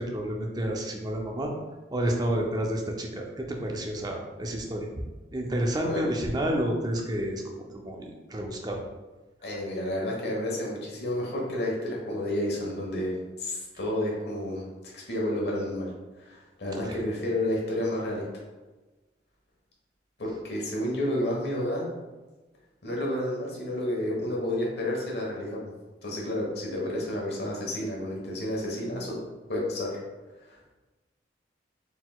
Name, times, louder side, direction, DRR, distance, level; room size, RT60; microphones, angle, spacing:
voice 1, 0.0-1.5 1.9-4.9 5.3-8.8 16.7-17.0, right 1 dB, 20° right, 1 dB, 0.5 m, -30 dB
voice 2, 9.4-14.7 14.9-15.9 16.2-18.3 20.2-21.9 22.8-25.7 26.0-29.2 29.5-30.0 30.4-30.7, left 1 dB, 60° left, -2 dB, 1.1 m, -30 dB
4.1 x 4.0 x 2.3 m, 1.2 s
head